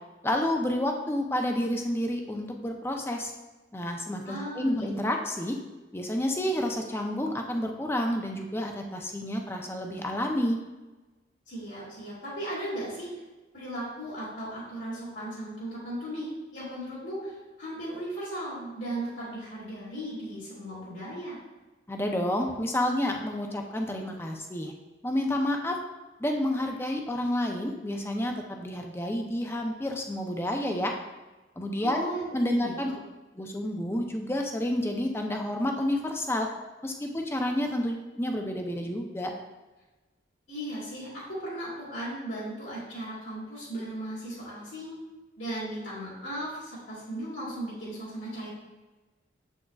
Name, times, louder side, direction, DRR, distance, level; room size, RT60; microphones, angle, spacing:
voice 1, 0.2-3.3 3.7-5.6 5.9-10.6 21.9-24.7 25.0-25.8 26.2-30.9 31.6-32.0 32.3-32.9 33.4-36.5 36.8-39.3, left 1 dB, 15° left, 2 dB, 0.5 m, -29 dB
voice 2, 4.2-5.2 11.5-13.2 13.5-21.4 31.8-32.7 40.5-45.0 45.4-48.5, right 1 dB, 80° left, -9 dB, 2.1 m, -36 dB
7.4 x 6.3 x 2.3 m, 1.2 s
head